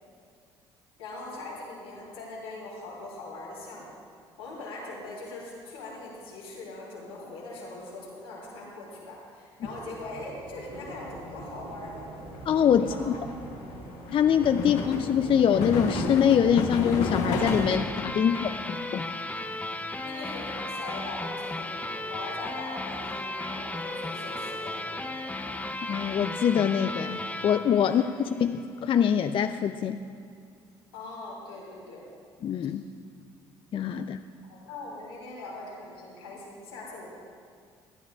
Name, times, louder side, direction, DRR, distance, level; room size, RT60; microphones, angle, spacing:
voice 1, 1.0-4.0 4.4-12.1 12.8-13.2 14.6-14.8 20.0-25.1 27.8-28.3 30.9-32.0 34.4-37.1, left 2 dB, 90° left, -6 dB, 3.2 m, -41 dB
sound 1, 9.6-17.8, right 8 dB, 50° right, 0.5 m, -41 dB
sound 2, 10.7-17.8, left 5 dB, 70° left, 1.1 m, -33 dB
voice 2, 12.5-13.1 14.1-18.5 18.9-19.0 25.8-30.0 32.4-32.8 33.7-34.2, left 8 dB, 45° left, 9 dB, 0.5 m, -24 dB
sound 3, 17.4-28.7, left 2 dB, 10° left, 0.8 m, -35 dB
24.5 x 10.0 x 2.4 m, 2.2 s
hypercardioid pair, 55°, 12 cm